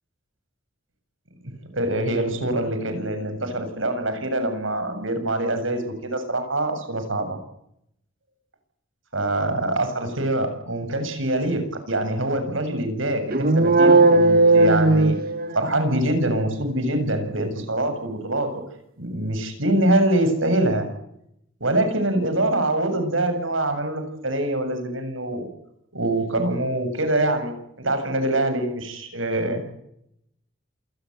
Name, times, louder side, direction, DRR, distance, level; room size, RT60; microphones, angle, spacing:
voice 1, 1.4-7.4 9.1-15.2 15.5-18.6 19.0-20.9 21.6-25.5 25.9-27.5 27.8-29.6, right 1 dB, 80° right, 8 dB, 7.3 m, -24 dB
sound 1, 13.3-15.9, right 2 dB, 50° right, 1.6 m, -16 dB
27.5 x 19.0 x 8.0 m, 0.76 s
head